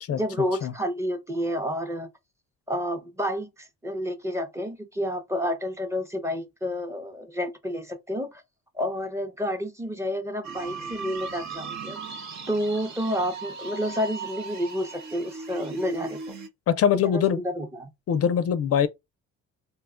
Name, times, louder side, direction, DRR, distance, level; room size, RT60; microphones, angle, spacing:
voice 1, 0.1-2.1 2.7-8.4 8.7-12.0 12.5-16.3 17.0-17.9, equal, 10° right, 0.6 m, -30 dB
sound 1, 10.4-16.5, right 4 dB, 65° right, 0.9 m, -38 dB
voice 2, 16.7-17.4 18.1-18.9, left 8 dB, 50° left, 0.4 m, -22 dB
2.8 x 2.1 x 3.6 m
cardioid pair, 90°, 30 cm